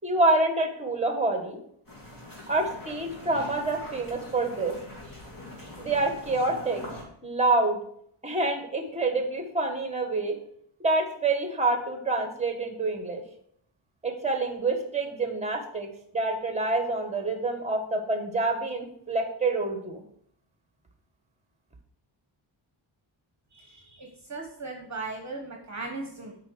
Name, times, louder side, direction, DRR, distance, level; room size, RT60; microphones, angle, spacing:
voice 1, 0.0-1.6 2.5-4.7 5.8-6.8 7.2-7.8 8.2-10.3 10.8-13.2 14.0-15.9 16.1-20.0, right 2 dB, 15° right, 5 dB, 1.6 m, -27 dB
sound 1, 1.9-7.0, left 1 dB, 40° left, 2.8 m, -43 dB
voice 2, 23.5-26.4, right 3 dB, 35° right, 2 dB, 1.2 m, -38 dB
8.5 x 5.0 x 6.4 m, 0.68 s
wide cardioid pair, 135°, 49 cm